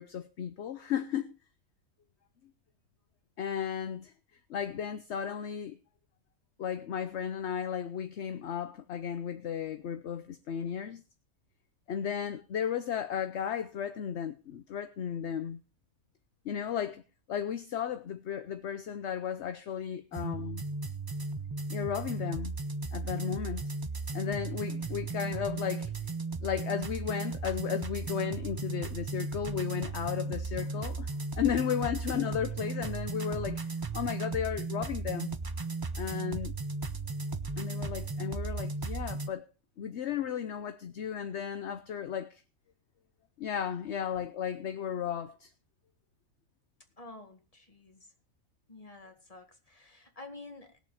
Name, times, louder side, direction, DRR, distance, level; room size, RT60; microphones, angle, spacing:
voice 1, 0.0-1.3 3.4-4.1 4.5-5.8 6.6-11.0 11.9-15.6 16.4-17.0 17.3-20.6 21.7-22.6 22.9-23.7 24.1-25.9 26.4-31.1 31.3-35.3 36.0-36.5 37.6-39.4 39.8-42.4 43.4-45.5, left 8 dB, 55° left, 1.0 m, -34 dB
sound 1, 20.1-39.3, right 3 dB, 30° right, 0.4 m, -36 dB
voice 2, 47.0-48.1 48.7-50.8, left 2 dB, 25° left, 2.1 m, -49 dB
19.5 x 7.0 x 4.8 m
omnidirectional pair, 1.5 m